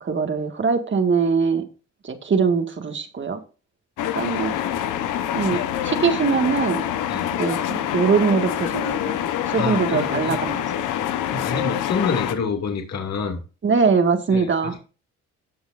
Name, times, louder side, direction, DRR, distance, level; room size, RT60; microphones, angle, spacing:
voice 1, 0.0-1.7 2.0-3.4 4.1-4.5 5.3-6.8 7.4-9.2 9.5-10.6 13.6-14.8, right 5 dB, 40° right, 6 dB, 1.9 m, -22 dB
sound 1, 4.0-12.4, left 11 dB, 90° left, 1.1 m, -26 dB
voice 2, 4.2-4.8 5.5-5.6 7.1-7.3 9.5-10.4 11.3-13.4 14.3-14.8, left 5 dB, 60° left, 3 dB, 2.5 m, -28 dB
17.5 x 6.4 x 2.6 m, 0.34 s
cardioid pair, 90°, 30 cm